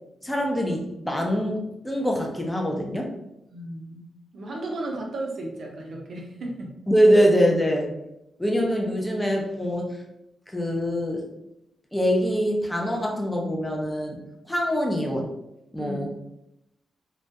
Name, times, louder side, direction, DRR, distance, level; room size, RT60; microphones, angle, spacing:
voice 1, 0.2-3.1 6.9-7.9 8.4-10.0 10.5-11.2 11.9-14.2 14.5-15.3 15.7-16.1, equal, 10° left, 0 dB, 0.5 m, -24 dB
voice 2, 3.5-4.0 4.3-6.8 15.8-16.0, right 1 dB, 65° right, 0 dB, 0.5 m, -34 dB
2.2 x 2.1 x 2.7 m, 0.86 s
cardioid pair, 85°, 0 cm